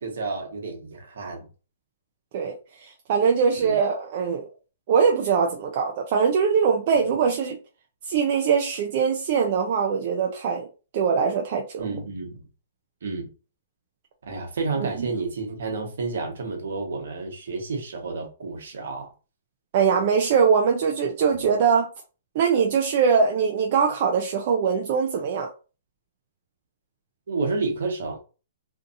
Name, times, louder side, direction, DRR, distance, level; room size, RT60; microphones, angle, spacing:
voice 1, 0.0-1.5 3.6-3.7 6.9-7.1 11.8-12.4 13.0-13.3 14.3-19.1 27.3-28.2, right 3 dB, 75° right, 1.0 m, -30 dB
voice 2, 2.8-4.5 4.9-7.6 8.1-10.7 10.9-11.9 15.0-15.1 19.7-21.9 22.3-25.5, right 6 dB, 50° right, 0.5 m, -22 dB
2.6 x 2.5 x 2.5 m
hypercardioid pair, 140°, 0 cm